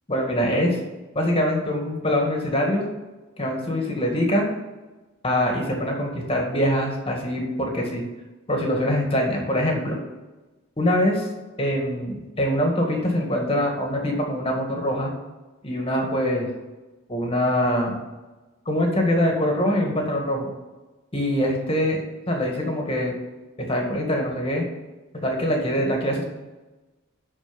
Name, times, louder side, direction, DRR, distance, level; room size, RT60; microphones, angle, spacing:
voice 1, 0.1-0.8 1.2-2.9 3.4-4.5 5.2-8.0 8.5-10.0 10.8-11.3 11.6-15.1 15.6-16.5 17.1-17.9 18.7-20.5 21.1-22.0 22.3-23.1 23.6-24.6 25.1-26.2, equal, 30° left, 1 dB, 2.0 m, -23 dB
12.0 x 4.8 x 5.3 m, 1.2 s
head